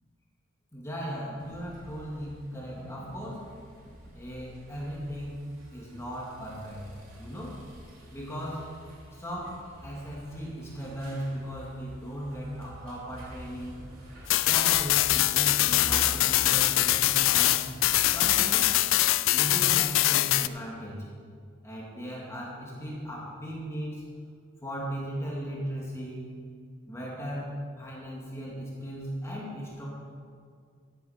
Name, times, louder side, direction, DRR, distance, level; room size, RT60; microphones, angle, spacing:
voice 1, 0.7-3.5 4.1-6.8 7.2-7.6 8.1-8.7 9.1-13.8 14.4-17.7 18.1-18.7 19.3-21.1 21.6-24.1 24.6-26.3 26.9-29.9, equal, 15° left, -4 dB, 2.1 m, -37 dB
sound 1, 1.4-18.2, equal, 90° right, 3.0 m, -47 dB
sound 2, 14.3-20.5, left 15 dB, 70° left, 0.4 m, -23 dB
13.0 x 8.6 x 5.1 m, 2.2 s
head